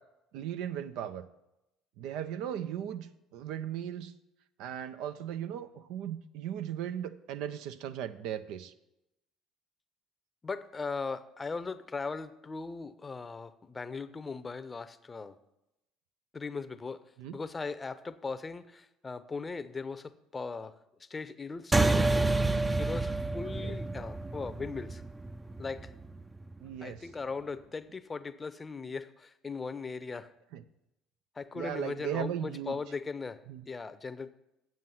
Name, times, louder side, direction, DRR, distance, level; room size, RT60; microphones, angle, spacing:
voice 1, 0.3-1.2 2.0-3.1 3.3-4.1 4.6-8.7 17.2-17.4 23.6-23.8 26.6-27.1 30.5-30.6 31.5-32.8 33.5-33.7, right 10 dB, 75° right, 11 dB, 0.5 m, -37 dB
voice 2, 10.4-15.4 16.3-17.0 17.3-20.7 21.1-22.3 22.8-25.0 25.6-25.9 26.8-30.3 31.4-33.4 33.7-34.3, left 4 dB, 25° left, 13 dB, 0.6 m, -39 dB
sound 1, 21.7-26.5, right 2 dB, 15° right, 0.5 m, -29 dB
9.3 x 7.6 x 5.7 m, 0.90 s
hypercardioid pair, 70°, 0 cm